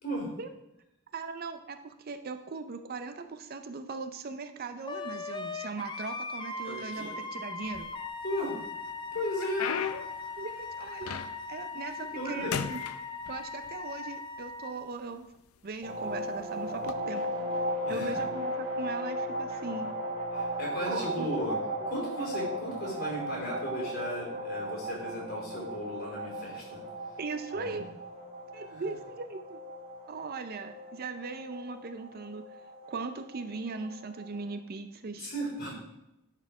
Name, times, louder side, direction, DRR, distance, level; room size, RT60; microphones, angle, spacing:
voice 1, 1.1-7.9 10.4-12.8 13.3-15.3 15.6-17.3 17.9-19.9 20.9-21.3 21.8-21.9 27.2-27.8 28.5-29.6 30.1-32.4 32.9-35.3, right 4 dB, 45° right, 8 dB, 0.5 m, -39 dB
Wind instrument woodwind instrument, 4.9-14.7, left 4 dB, 20° left, 0.4 m, -39 dB
voice 2, 6.6-7.2 8.2-8.6 9.1-9.8 12.2-12.6 17.9-18.2 20.4-21.6 21.9-26.8 27.6-27.9 28.7-28.8 35.2-35.7, equal, 45° left, -3 dB, 3.5 m, -35 dB
sound 1, 7.6-8.4 8.9-11.6 12.0-12.3 12.5-13.7 14.6-14.7 15.4-15.6 16.7-16.9, left 7 dB, 80° left, 0.5 m, -37 dB
sound 2, 15.8-34.4, equal, 25° right, 1.7 m, -36 dB
9.9 x 4.5 x 4.7 m, 0.87 s
head